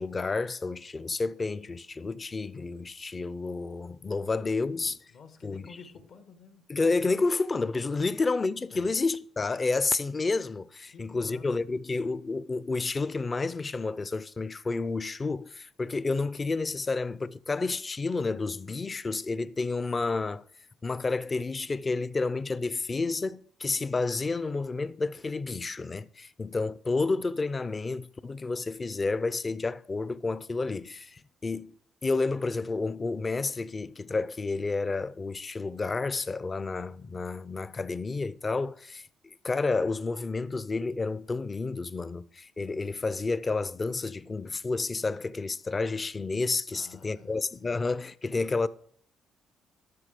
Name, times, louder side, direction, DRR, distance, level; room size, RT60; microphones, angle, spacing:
voice 1, 0.0-5.0 5.4-5.8 6.7-20.5 20.8-31.7 32.0-39.1 39.4-48.7, left 3 dB, 30° left, 0.5 m, -30 dB
voice 2, 5.1-6.7 8.0-8.2 8.7-9.0 10.9-11.7 46.7-47.8, left 5 dB, 70° left, 1.6 m, -51 dB
12.5 x 6.0 x 5.0 m
cardioid pair, 90°, 0 cm